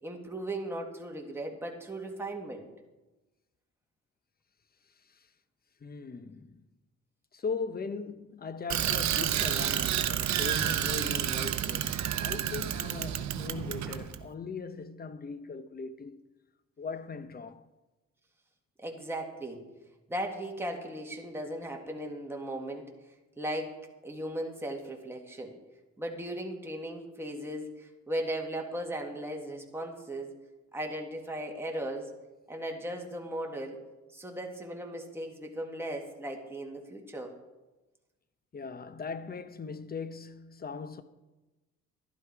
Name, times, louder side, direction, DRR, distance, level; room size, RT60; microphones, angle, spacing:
voice 1, 0.0-2.7 18.8-19.6 20.1-22.9 23.4-23.8 24.0-25.6 26.0-30.3 30.7-32.1 32.5-33.8 34.1-37.3, right 1 dB, 10° right, 2.1 m, -37 dB
voice 2, 5.8-6.6 7.3-16.2 16.8-17.7 38.5-41.0, left 5 dB, 30° left, 0.9 m, -39 dB
Bicycle, 8.7-14.2, right 10 dB, 65° right, 0.8 m, -30 dB
11.5 x 11.5 x 4.7 m
cardioid pair, 90°, 30 cm